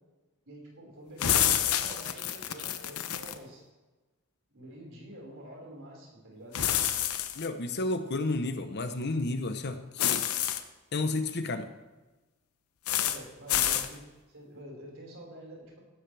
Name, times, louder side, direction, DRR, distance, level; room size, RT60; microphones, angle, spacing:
voice 1, 0.4-3.6 4.5-6.6 13.0-15.8, equal, 60° right, -2 dB, 5.2 m, -47 dB
sound 1, 1.2-3.4 6.5-7.5 10.0-10.6 12.9-13.2 13.5-13.9, left 10 dB, 90° left, 0.9 m, -28 dB
voice 2, 7.3-10.3 10.9-11.7, left 2 dB, 50° left, 8 dB, 1.0 m, -31 dB
16.0 x 13.0 x 3.4 m, 1.2 s
head